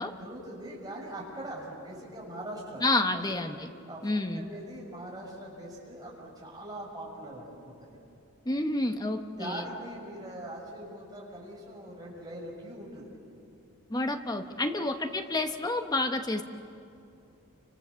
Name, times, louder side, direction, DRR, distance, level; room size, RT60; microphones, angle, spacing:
voice 1, 0.0-2.9 3.1-3.3 3.9-8.0 9.4-13.1 14.8-14.9, right 1 dB, 20° right, -3 dB, 6.3 m, -42 dB
voice 2, 2.8-3.7 4.0-4.5 8.5-9.6 13.9-16.4, left 2 dB, 20° left, 7 dB, 0.9 m, -29 dB
30.0 x 26.0 x 7.0 m, 2.6 s
head